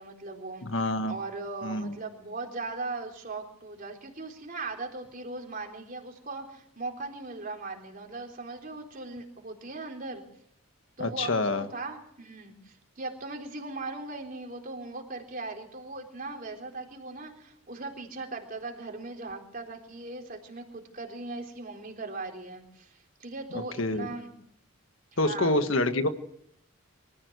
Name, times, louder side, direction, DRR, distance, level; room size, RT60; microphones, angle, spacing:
voice 1, 0.0-0.7 1.0-10.2 11.0-24.3 25.1-25.6, right 3 dB, 40° right, 2 dB, 3.9 m, -39 dB
voice 2, 0.6-1.1 1.6-1.9 11.0-11.7 23.8-24.1 25.2-26.1, left 2 dB, 65° left, 8 dB, 1.5 m, -27 dB
24.5 x 14.0 x 8.1 m, 0.72 s
head